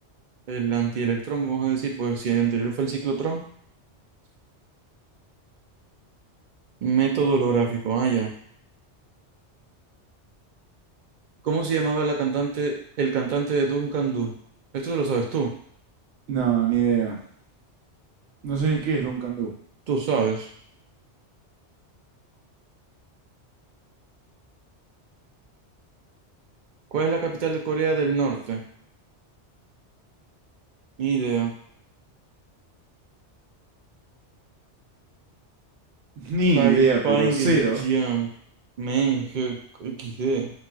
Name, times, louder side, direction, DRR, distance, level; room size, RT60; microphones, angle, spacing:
voice 1, 0.5-3.4 6.8-8.3 11.4-14.3 14.7-15.5 19.9-20.5 26.9-28.6 31.0-31.5 36.6-38.3 38.8-40.5, right 5 dB, 55° right, 0 dB, 0.6 m, -25 dB
voice 2, 16.3-17.2 18.4-19.5 36.2-37.8, right 5 dB, 85° right, 0 dB, 1.0 m, -22 dB
4.1 x 2.3 x 2.3 m, 0.62 s
omnidirectional pair, 1.2 m